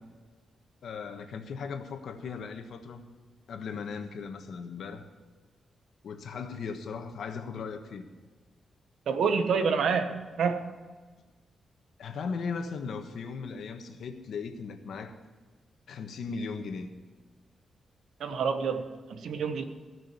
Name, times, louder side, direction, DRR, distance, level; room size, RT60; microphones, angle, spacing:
voice 1, 0.8-3.1 3.5-5.0 6.0-8.1 12.0-15.2 15.9-16.9, left 5 dB, 75° left, 6 dB, 1.4 m, -37 dB
voice 2, 9.1-10.7 18.2-19.6, right 5 dB, 80° right, 8 dB, 1.2 m, -28 dB
16.5 x 6.2 x 9.3 m, 1.4 s
cardioid pair, 115°, 0 cm